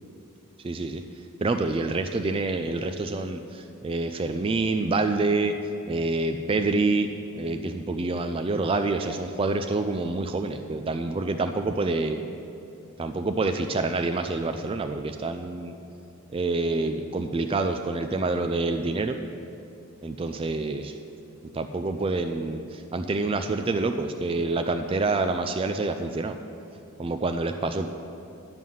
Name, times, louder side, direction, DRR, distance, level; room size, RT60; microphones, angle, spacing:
voice 1, 0.6-1.0 1.4-5.5 5.9-7.1 7.3-12.2 13.0-15.7 16.3-19.2 20.0-20.9 21.5-26.4 27.0-27.9, right 3 dB, 25° right, 7 dB, 0.3 m, -27 dB
11.0 x 5.5 x 7.7 m, 2.6 s
head